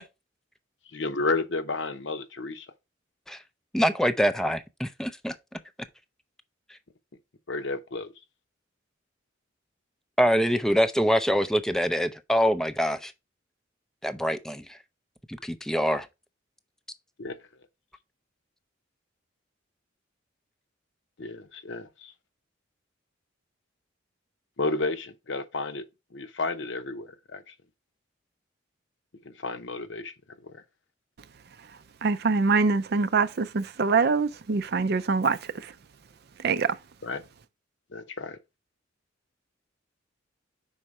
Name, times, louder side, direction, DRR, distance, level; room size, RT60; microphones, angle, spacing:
voice 1, 0.9-2.7 7.5-8.1 17.2-17.4 21.2-22.1 24.6-25.8 26.1-27.5 29.2-30.1 30.4-30.6 37.0-37.2 37.9-38.4, left 3 dB, 65° left, 0.8 m, -32 dB
voice 2, 3.7-5.3 10.2-13.1 14.0-14.8 15.3-16.1, equal, 5° left, 0.4 m, -25 dB
voice 3, 32.0-35.4 36.4-36.8, right 4 dB, 55° right, 0.5 m, -24 dB
5.5 x 4.2 x 4.7 m
head